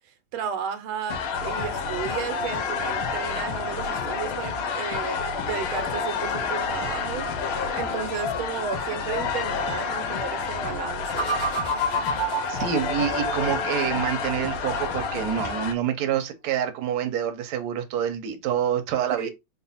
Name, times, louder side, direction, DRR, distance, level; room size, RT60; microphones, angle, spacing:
voice 1, 0.3-11.4 19.2-19.3, right 8 dB, 85° right, 1.5 m, -34 dB
sound 1, 1.1-15.7, left 5 dB, 85° left, 1.6 m, -29 dB
sound 2, 11.2-14.0, right 1 dB, 55° left, 1.7 m, -29 dB
voice 2, 12.5-19.3, right 9 dB, 65° right, 1.1 m, -27 dB
4.0 x 2.1 x 4.0 m
omnidirectional pair, 2.3 m